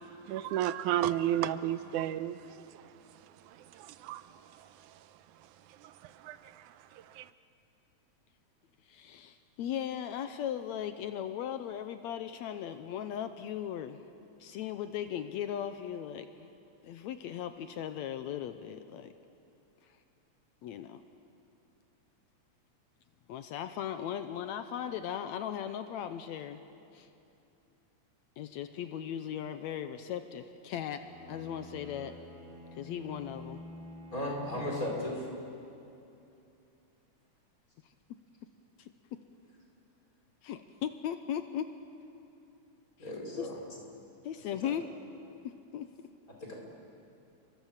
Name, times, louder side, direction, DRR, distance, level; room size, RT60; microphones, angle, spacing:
voice 1, 0.3-2.4 3.8-4.2 6.2-6.4 7.2-7.3, right 11 dB, 90° right, 13 dB, 2.3 m, -31 dB
voice 2, 8.9-14.0 14.4-16.5 16.8-19.1 20.6-21.0 23.3-26.6 26.9-27.1 28.4-31.0 31.3-32.2 32.8-33.6 38.8-39.2 40.4-41.7 43.3-43.5 44.2-44.9 45.4-45.9, left 9 dB, 75° left, 9 dB, 2.0 m, -38 dB
Bowed string instrument, 30.9-35.4, left 1 dB, 40° right, 5.4 m, -49 dB
voice 3, 34.1-35.3 43.0-43.5 44.6-44.7 46.4-46.5, left 1 dB, 25° left, -1 dB, 5.1 m, -35 dB
30.0 x 24.0 x 7.3 m, 2.7 s
omnidirectional pair, 3.4 m